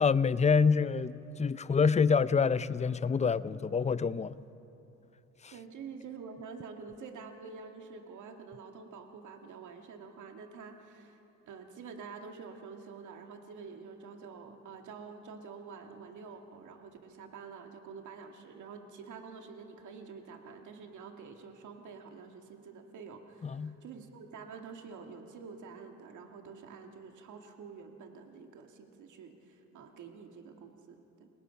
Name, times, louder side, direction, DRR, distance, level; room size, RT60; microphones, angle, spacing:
voice 1, 0.0-4.3 5.4-5.5 23.4-23.7, left 5 dB, 25° left, 0.5 m, -27 dB
voice 2, 5.5-11.2 11.5-31.3, right 5 dB, 75° right, 2.0 m, -48 dB
29.5 x 18.0 x 5.8 m
cardioid pair, 90°, 30 cm